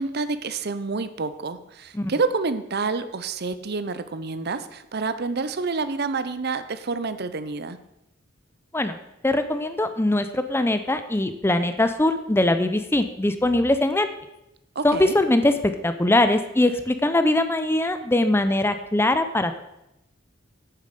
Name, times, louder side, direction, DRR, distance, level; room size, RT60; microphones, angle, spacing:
voice 1, 0.0-7.8 14.8-15.2, right 4 dB, 55° right, 12 dB, 0.7 m, -28 dB
voice 2, 9.2-14.1 14.8-19.6, left 1 dB, 10° left, 9 dB, 0.6 m, -22 dB
9.3 x 7.1 x 6.7 m, 0.87 s
head